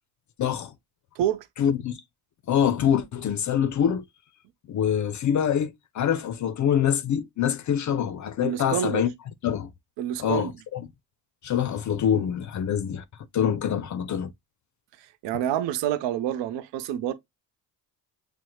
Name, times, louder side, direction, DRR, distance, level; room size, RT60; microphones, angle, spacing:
voice 1, 0.4-0.7 1.6-2.0 2.5-4.0 4.7-9.1 9.4-9.7 10.2-10.9 11.4-13.0 13.3-14.3, left 9 dB, 45° left, 0.4 m, -25 dB
voice 2, 1.2-1.5 8.4-9.0 10.0-10.5 15.2-17.1, right 11 dB, 85° right, 0.6 m, -27 dB
6.2 x 2.1 x 2.8 m
cardioid pair, 105°, 42 cm